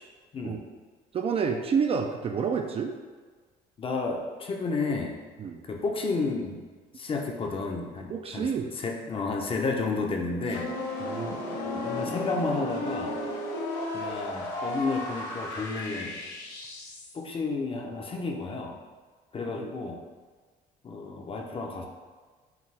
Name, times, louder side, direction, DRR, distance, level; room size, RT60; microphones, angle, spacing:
voice 1, 1.1-2.9 5.4-5.6 8.1-8.8 11.0-11.5 19.6-19.7, right 6 dB, 35° right, 4 dB, 0.3 m, -29 dB
voice 2, 3.8-5.2 5.6-6.6 7.0-8.5 8.8-10.7 11.6-13.2 13.9-16.2 17.1-18.8 19.3-20.0 20.8-21.9, left 3 dB, 30° left, 2 dB, 0.6 m, -31 dB
sound 1, 10.5-17.2, left 2 dB, 85° left, 0.8 m, -34 dB
5.7 x 2.3 x 3.3 m, 1.4 s
cardioid pair, 110°, 17 cm